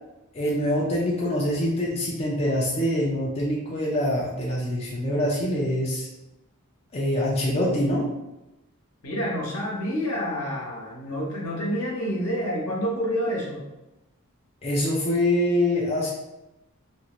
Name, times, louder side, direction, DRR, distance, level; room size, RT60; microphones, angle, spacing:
voice 1, 0.3-6.1 6.9-8.0 14.6-16.1, left 1 dB, 30° left, -5 dB, 0.4 m, -24 dB
voice 2, 9.0-13.6, equal, 70° left, -3 dB, 0.9 m, -28 dB
2.5 x 2.4 x 2.9 m, 0.96 s
head